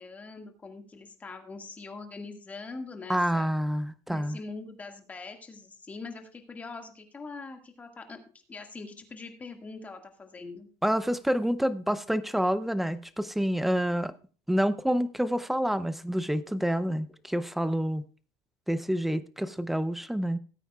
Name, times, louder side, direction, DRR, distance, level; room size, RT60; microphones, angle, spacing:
voice 1, 0.0-3.5 4.1-8.2 8.5-10.7, left 3 dB, 20° left, 1.9 m, -43 dB
voice 2, 3.1-4.4 10.8-14.1 14.5-18.0 18.7-20.4, equal, ahead, 0.6 m, -28 dB
18.0 x 9.0 x 2.4 m
cardioid pair, 140°, 8 cm